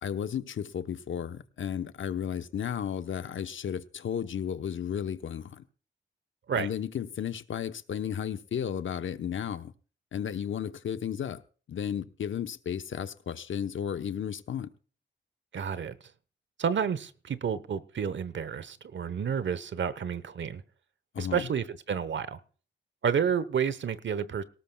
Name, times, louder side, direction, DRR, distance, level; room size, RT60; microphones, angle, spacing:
voice 1, 0.0-5.6 6.6-9.7 10.1-11.4 11.7-14.7 21.1-21.5, left 8 dB, 80° left, 1.0 m, -33 dB
voice 2, 15.5-16.0 16.6-20.6 21.2-22.4 23.0-24.4, right 7 dB, 70° right, 1.0 m, -30 dB
19.0 x 18.0 x 2.3 m
cardioid pair, 80°, 20 cm